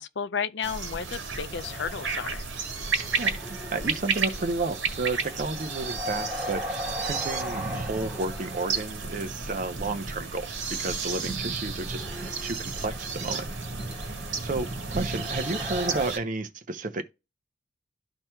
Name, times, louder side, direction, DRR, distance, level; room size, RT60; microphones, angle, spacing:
voice 1, 0.0-2.5, left 6 dB, 65° left, 0.5 m, -33 dB
sound 1, 0.6-16.2, right 4 dB, 85° right, 1.7 m, -32 dB
sound 2, 0.8-0.9 1.4-9.4 11.6-16.1, left 1 dB, 5° right, 1.2 m, -39 dB
voice 2, 3.2-6.6 7.0-13.5 14.0-17.1, right 3 dB, 45° right, 0.6 m, -32 dB
13.0 x 4.4 x 2.2 m
head